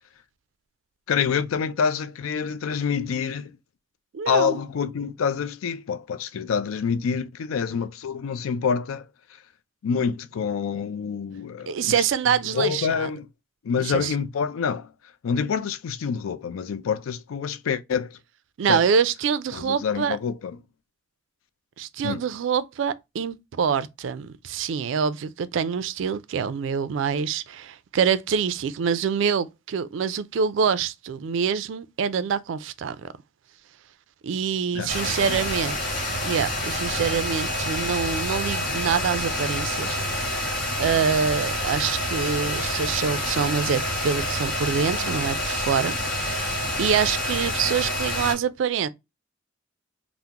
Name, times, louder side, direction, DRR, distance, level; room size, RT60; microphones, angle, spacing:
voice 1, 1.1-3.5 4.3-9.1 9.8-11.9 12.5-13.3 13.6-14.9 15.2-18.2 18.7-18.8 19.5-20.5 22.0-22.2 34.7-35.4, left 6 dB, 90° left, 0.4 m, -27 dB
voice 2, 4.1-4.6 11.7-13.1 13.8-14.1 18.6-20.2 21.8-33.1 34.2-40.5 40.8-48.9, right 6 dB, 70° right, 0.3 m, -26 dB
sound 1, 34.9-48.4, left 1 dB, 45° left, 1.3 m, -28 dB
3.6 x 2.0 x 2.7 m
head